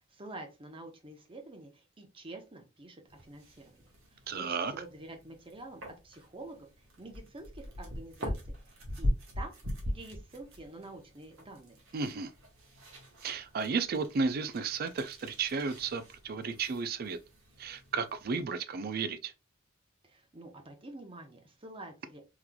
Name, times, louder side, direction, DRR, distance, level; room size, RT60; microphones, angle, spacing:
voice 1, 0.0-6.7 7.0-8.5 9.0-9.1 9.4-9.5 9.9-11.8 20.0-22.2, right 2 dB, 25° right, 0.8 m, -48 dB
sound 1, 3.1-18.4, equal, 70° right, 1.3 m, -41 dB
voice 2, 4.3-4.7 11.9-12.3 13.2-17.2 17.6-19.3, right 4 dB, 50° right, 0.4 m, -33 dB
3.8 x 3.0 x 2.2 m
head